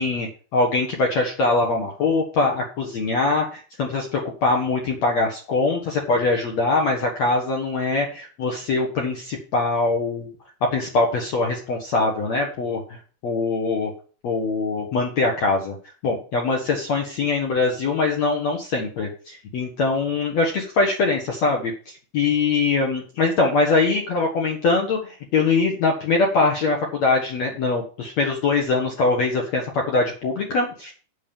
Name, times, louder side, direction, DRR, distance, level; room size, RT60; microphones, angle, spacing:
voice 1, 0.0-10.3 10.7-13.9 14.2-15.7 16.0-30.9, left 3 dB, 60° left, 0 dB, 1.9 m, -22 dB
8.5 x 6.4 x 7.1 m, 0.39 s
omnidirectional pair, 5.0 m